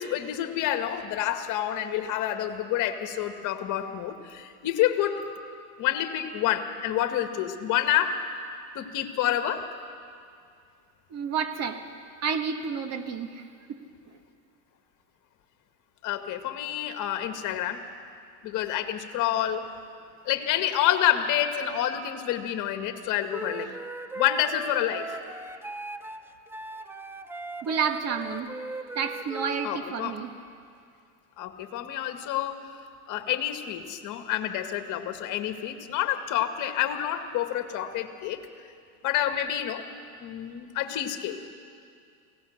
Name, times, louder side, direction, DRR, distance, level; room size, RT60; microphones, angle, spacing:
voice 1, 0.0-5.3 5.8-8.2 8.7-9.7 16.0-17.8 18.4-19.7 20.3-23.7 24.2-25.2 29.6-30.2 31.4-32.6 33.1-38.4 39.0-39.8 40.2-41.4, left 11 dB, 45° left, 7 dB, 1.9 m, -28 dB
voice 2, 11.1-11.8 12.2-13.4 13.7-13.8 23.7-23.8 27.6-28.5 29.0-30.3, right 6 dB, 35° right, 7 dB, 1.8 m, -30 dB
Wind instrument woodwind instrument, 23.3-29.7, right 2 dB, 5° right, 0.6 m, -38 dB
23.5 x 17.5 x 6.6 m, 2.3 s
supercardioid pair, 115°, 43 cm